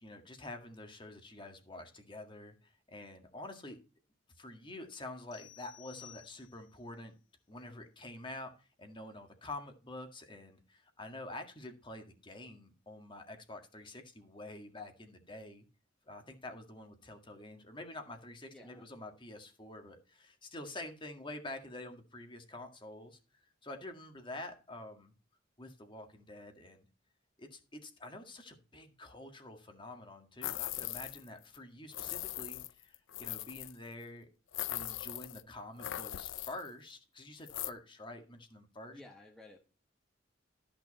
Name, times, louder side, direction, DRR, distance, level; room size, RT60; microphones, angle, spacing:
voice 1, 0.0-3.8 4.4-7.1 7.5-15.7 16.1-23.2 23.6-25.1 25.6-26.9 27.4-34.3 34.7-39.0, left 2 dB, 25° left, 5 dB, 1.9 m, -47 dB
sound 1, 5.3-6.8, left 13 dB, 65° left, 0.9 m, -55 dB
voice 2, 18.5-18.9 38.9-39.7, left 2 dB, 5° left, 1 dB, 1.3 m, -54 dB
sound 2, 30.4-31.3 31.5-31.6 31.9-33.7 34.5-35.4 35.8-36.7 37.5-37.7, left 14 dB, 80° left, 0.5 m, -40 dB
13.5 x 6.0 x 4.2 m, 0.33 s
head